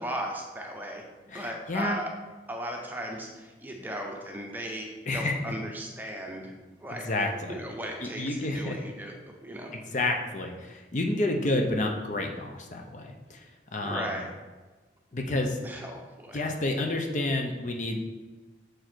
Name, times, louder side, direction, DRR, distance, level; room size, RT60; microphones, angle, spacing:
voice 1, 0.0-2.1 2.5-7.1 7.5-9.7 13.8-14.3 15.6-16.4, right 1 dB, 10° right, 1 dB, 0.8 m, -37 dB
voice 2, 1.3-2.0 5.1-5.3 6.9-7.6 8.0-8.8 9.7-13.4 13.7-14.1 15.1-15.6 16.3-18.1, left 2 dB, 40° left, 3 dB, 0.6 m, -29 dB
6.4 x 4.7 x 4.4 m, 1.3 s
head